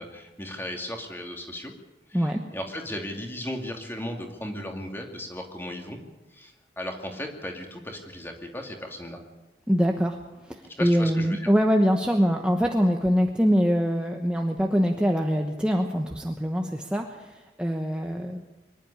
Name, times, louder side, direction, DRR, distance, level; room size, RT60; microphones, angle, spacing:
voice 1, 0.0-1.7 2.1-6.0 6.3-9.2 10.8-11.5, left 1 dB, 15° left, 2 dB, 2.5 m, -36 dB
voice 2, 9.7-10.2 10.5-18.4, equal, 5° right, 2 dB, 1.1 m, -24 dB
24.0 x 11.0 x 10.0 m, 1.1 s
head